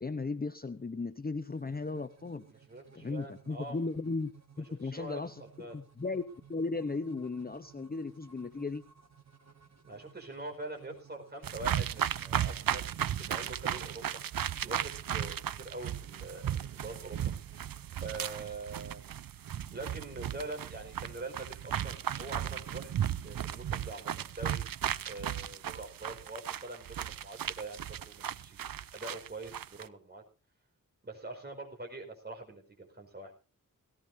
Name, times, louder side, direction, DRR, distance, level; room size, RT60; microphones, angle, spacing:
voice 1, 0.0-2.4 2.9-4.3 4.6-6.2 6.5-8.8, left 3 dB, 25° left, 11 dB, 0.8 m, -36 dB
sound 1, 1.4-18.0, right 7 dB, 50° right, 1.7 m, -58 dB
voice 2, 2.5-3.8 4.8-5.8 9.8-17.3 18.0-19.1 19.7-24.6 25.1-30.2 31.0-33.3, right 2 dB, 30° right, 2 dB, 4.8 m, -44 dB
sound 2, 11.4-29.8, right 10 dB, 80° right, 0.7 m, -35 dB
18.5 x 17.0 x 2.7 m, 0.33 s
wide cardioid pair, 95°, 34 cm